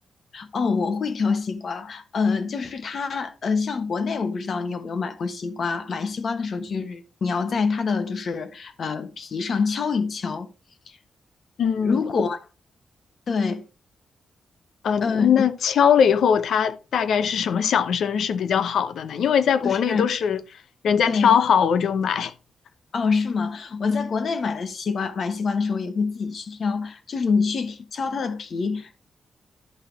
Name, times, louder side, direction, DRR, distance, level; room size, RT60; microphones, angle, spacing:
voice 1, 0.3-10.5 10.9-11.0 11.8-12.4 13.3-13.6 15.0-15.4 19.6-20.1 21.1-21.4 22.9-29.0, left 5 dB, 55° left, 1.3 m, -26 dB
voice 2, 11.6-12.2 14.8-20.4 20.8-22.3, left 7 dB, 80° left, 0.7 m, -21 dB
11.5 x 5.6 x 3.4 m
wide cardioid pair, 125°, 0 cm